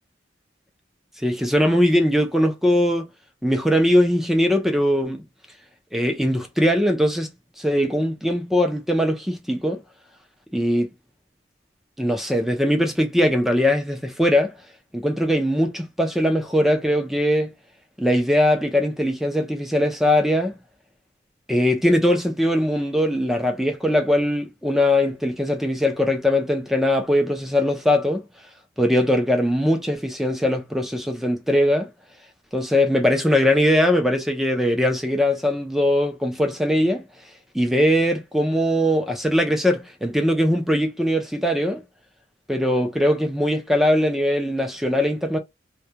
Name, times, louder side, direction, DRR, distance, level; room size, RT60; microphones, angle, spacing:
voice 1, 1.2-3.1 3.4-5.2 5.9-7.3 7.6-9.8 10.5-10.9 12.0-14.5 14.9-17.5 18.0-20.6 21.5-28.2 28.8-31.9 32.5-37.0 37.5-41.8 42.5-45.4, left 1 dB, ahead, 0.5 m, -21 dB
2.3 x 2.3 x 2.8 m
head